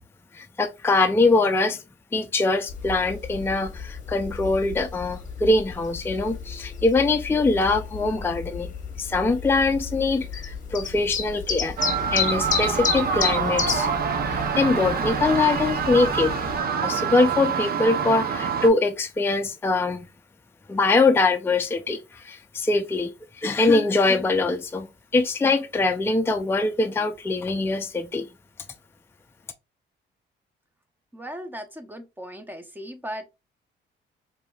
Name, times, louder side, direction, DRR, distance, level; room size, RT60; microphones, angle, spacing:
voice 1, 0.3-1.8 2.1-8.7 9.0-11.8 12.1-13.9 14.3-16.3 16.8-20.1 20.7-23.1 23.4-24.9 25.1-28.3, left 3 dB, 10° left, 0.4 m, -23 dB
sound 1, 2.7-16.6, left 6 dB, 40° left, 0.8 m, -32 dB
sound 2, 11.8-18.7, right 6 dB, 50° right, 0.7 m, -26 dB
voice 2, 31.1-33.3, equal, 10° right, 0.8 m, -37 dB
4.8 x 2.7 x 2.3 m
cardioid pair, 90°, 20 cm